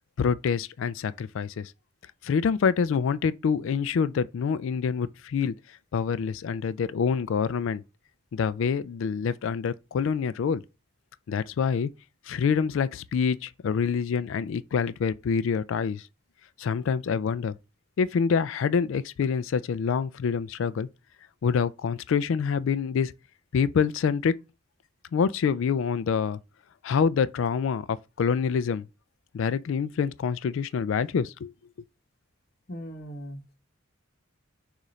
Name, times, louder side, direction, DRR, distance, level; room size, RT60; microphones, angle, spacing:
voice 1, 0.2-1.7 2.2-5.5 5.9-7.8 8.3-10.6 11.3-11.9 12.3-16.0 16.6-17.5 18.0-20.9 21.4-23.1 23.5-24.3 25.1-26.4 26.8-28.9 29.3-31.5, left 6 dB, 65° left, 0.3 m, -26 dB
voice 2, 32.7-33.5, equal, 45° left, 0.9 m, -39 dB
6.5 x 2.5 x 3.1 m
head